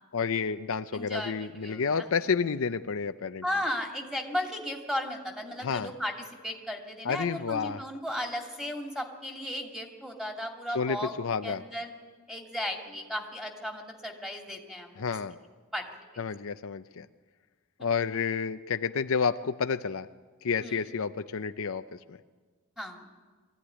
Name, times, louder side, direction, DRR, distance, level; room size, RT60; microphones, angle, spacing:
voice 1, 0.1-3.4 5.6-5.9 7.0-7.8 10.7-11.6 15.0-15.4 16.2-17.1 17.8-20.1 20.4-22.2, left 5 dB, 65° left, 10 dB, 0.6 m, -30 dB
voice 2, 0.9-2.1 3.4-6.1 6.4-11.1 11.4-11.9 12.3-15.1 15.7-15.9 16.1-16.2 17.8-17.9 20.6-20.8 22.8-23.1, left 1 dB, 5° right, 2 dB, 2.6 m, -35 dB
23.0 x 15.0 x 10.0 m, 1.4 s
head